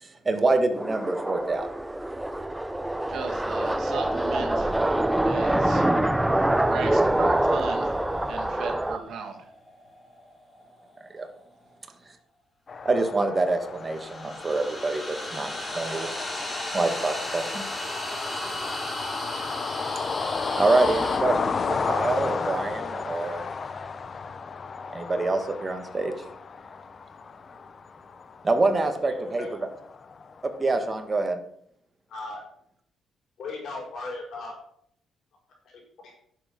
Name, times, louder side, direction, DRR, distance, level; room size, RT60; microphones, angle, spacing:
voice 1, 0.0-1.7 11.1-11.3 12.8-17.6 20.5-23.4 24.9-26.1 28.4-29.4 30.6-31.4, right 3 dB, 30° right, 6 dB, 1.8 m, -26 dB
sound 1, 0.7-9.0, right 1 dB, 10° right, 0.6 m, -25 dB
voice 2, 3.1-4.9 5.2-5.9 6.7-8.0 8.3-9.5, right 6 dB, 70° right, 3 dB, 2.3 m, -36 dB
sound 2, 6.0-11.2 13.7-21.2, left 1 dB, 20° left, 4.1 m, -36 dB
sound 3, 12.7-31.3, left 5 dB, 40° left, 0.8 m, -33 dB
voice 3, 32.1-32.4 33.4-34.5 35.6-36.1, left 3 dB, 65° left, 0 dB, 5.1 m, -37 dB
10.5 x 7.4 x 5.5 m, 0.67 s
cardioid pair, 90°, 0 cm